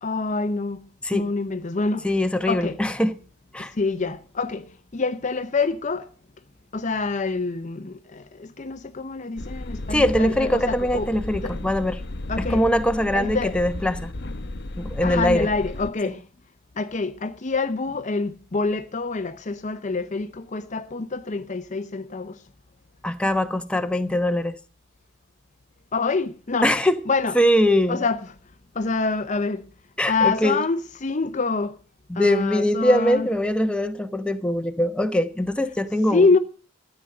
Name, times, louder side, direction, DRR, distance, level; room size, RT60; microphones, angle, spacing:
voice 1, 0.0-2.1 2.5-2.8 3.7-6.1 6.7-11.6 12.3-12.6 13.1-13.6 15.0-16.2 16.8-22.4 25.9-26.7 27.1-27.3 27.9-28.2 28.8-29.7 30.1-31.8 32.2-33.3 36.1-36.4, left 3 dB, 35° left, 0.6 m, -26 dB
voice 2, 2.0-3.1 3.5-3.7 9.9-12.0 12.4-14.1 14.8-15.5 16.1-16.2 23.0-24.6 26.6-27.0 27.3-28.0 30.0-30.6 32.1-36.3, left 1 dB, 5° left, 1.0 m, -22 dB
sound 1, 9.4-15.9, left 1 dB, 55° left, 0.9 m, -33 dB
14.0 x 9.0 x 6.5 m
head